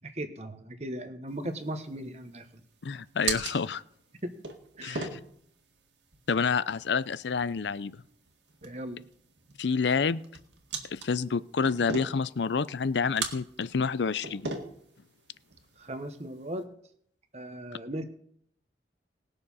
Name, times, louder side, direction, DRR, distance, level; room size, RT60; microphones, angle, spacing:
voice 1, 0.0-2.5 4.2-4.3 4.8-5.1 8.6-9.0 15.8-16.7 17.3-18.0, right 1 dB, 40° right, 8 dB, 1.2 m, -37 dB
sound 1, 1.3-16.6, right 4 dB, 85° right, 2.0 m, -41 dB
voice 2, 2.8-3.8 4.8-5.2 6.3-8.0 9.6-10.2 10.9-14.5, left 5 dB, 80° left, 17 dB, 0.5 m, -28 dB
19.0 x 6.8 x 5.6 m, 0.66 s
head